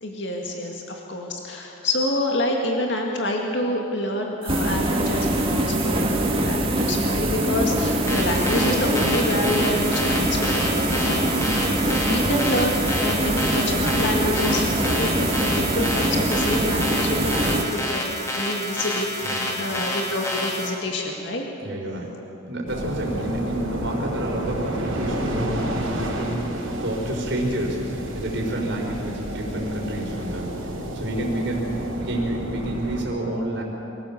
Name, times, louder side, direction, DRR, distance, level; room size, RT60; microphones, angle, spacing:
voice 1, 0.0-5.3 5.5-21.5 23.3-23.4, left 1 dB, 60° left, 0 dB, 2.1 m, -27 dB
sound 1, 4.4-17.6, right 1 dB, 25° right, 1.9 m, -23 dB
sound 2, 8.1-20.7, left 1 dB, 15° left, 2.4 m, -29 dB
voice 2, 19.2-19.8 21.6-22.1 22.4-30.5 30.9-33.6, right 1 dB, 60° right, -1 dB, 4.5 m, -29 dB
sound 3, 22.7-33.0, equal, 85° right, 5.0 m, -30 dB
24.5 x 16.0 x 7.3 m, 3.0 s
head